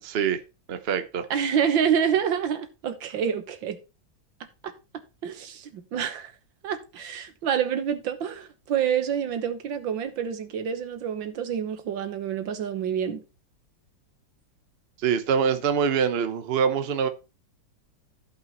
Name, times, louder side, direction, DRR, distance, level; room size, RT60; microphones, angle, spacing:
voice 1, 0.0-0.4 0.7-1.2 15.0-17.1, right 7 dB, 45° right, 0.9 m, -24 dB
voice 2, 1.3-3.8 4.6-4.7 5.2-6.3 6.6-13.2, right 8 dB, 85° right, 1.9 m, -27 dB
15.0 x 5.5 x 3.0 m
omnidirectional pair, 2.0 m